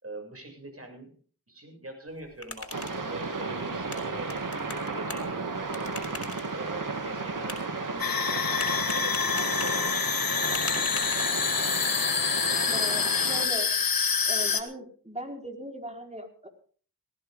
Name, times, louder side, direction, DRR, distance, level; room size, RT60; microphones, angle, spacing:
voice 1, 0.0-1.1 1.5-6.0 6.5-10.6, right 2 dB, 45° right, 3 dB, 7.4 m, -44 dB
sound 1, 2.1-11.7, left 2 dB, 45° left, 5.0 m, -44 dB
sound 2, 2.7-13.5, right 3 dB, 70° right, 2.6 m, -34 dB
sound 3, 8.0-14.6, left 6 dB, 90° left, 1.6 m, -27 dB
voice 2, 12.7-13.7 14.2-16.5, equal, 20° right, 2 dB, 4.7 m, -38 dB
19.0 x 15.0 x 3.8 m, 0.43 s
cardioid pair, 45°, 34 cm